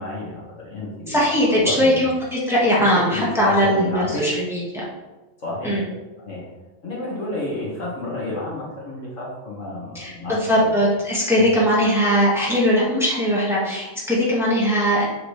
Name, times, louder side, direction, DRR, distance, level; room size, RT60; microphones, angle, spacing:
voice 1, 0.0-1.1 1.5-2.0 2.8-4.3 5.4-5.8 6.2-6.5 6.8-10.7 11.4-11.5, left 1 dB, 75° left, -5 dB, 2.2 m, -30 dB
voice 2, 1.1-4.8 5.6-5.8 9.9-15.0, equal, ahead, -7 dB, 1.6 m, -20 dB
7.1 x 5.0 x 3.3 m, 1.1 s
omnidirectional pair, 1.3 m